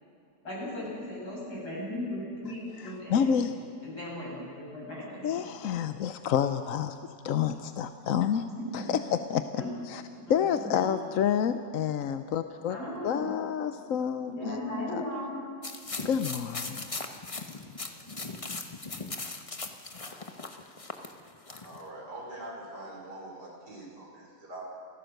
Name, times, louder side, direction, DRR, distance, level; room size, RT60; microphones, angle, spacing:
voice 1, 0.4-3.4 3.8-5.5 8.6-9.0 9.5-9.8 10.2-10.9 12.7-13.3 14.3-15.4, left 1 dB, 80° left, -5 dB, 8.3 m, -37 dB
voice 2, 2.8-3.6 5.2-6.9 7.2-8.5 8.7-9.6 9.9-10.0 10.3-12.8 13.0-14.6 14.9-15.0 16.0-17.0, left 8 dB, 65° left, 9 dB, 1.0 m, -29 dB
sound 1, 15.6-21.8, left 3 dB, 25° left, 1.0 m, -39 dB
voice 3, 21.6-24.7, right 1 dB, 90° right, -2 dB, 5.6 m, -43 dB
29.0 x 15.0 x 6.6 m, 2.4 s
omnidirectional pair, 1.7 m